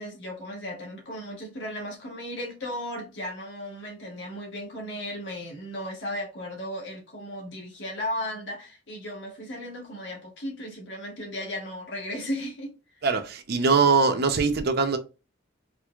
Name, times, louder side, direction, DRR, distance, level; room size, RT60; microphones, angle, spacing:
voice 1, 0.0-12.7, left 1 dB, 60° left, 1.5 m, -35 dB
voice 2, 13.0-15.0, right 4 dB, 50° right, 0.5 m, -22 dB
4.4 x 2.3 x 2.2 m
head